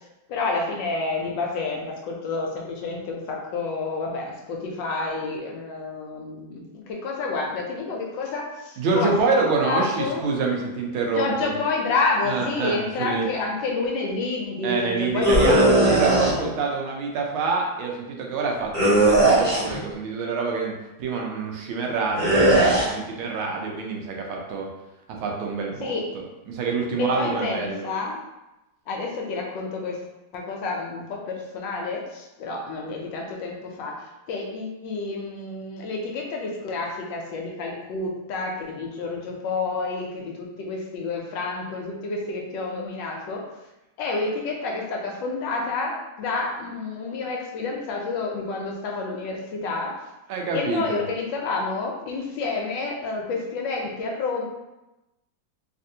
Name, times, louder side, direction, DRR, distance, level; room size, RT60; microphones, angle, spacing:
voice 1, 0.3-10.2 11.2-16.6 25.8-26.1 27.0-28.2 28.9-30.0 30.3-43.4 44.0-50.0 50.5-54.4, left 3 dB, 75° left, 0 dB, 1.2 m, -29 dB
voice 2, 8.8-11.5 12.2-13.3 14.6-20.7 21.0-24.7 25.1-27.9 50.3-51.0, right 4 dB, 90° right, 0 dB, 1.5 m, -27 dB
sound 1, 15.2-16.3 18.7-19.8 22.2-22.9, right 1 dB, 30° right, 1.0 m, -18 dB
3.4 x 2.5 x 2.7 m, 0.98 s
omnidirectional pair, 2.2 m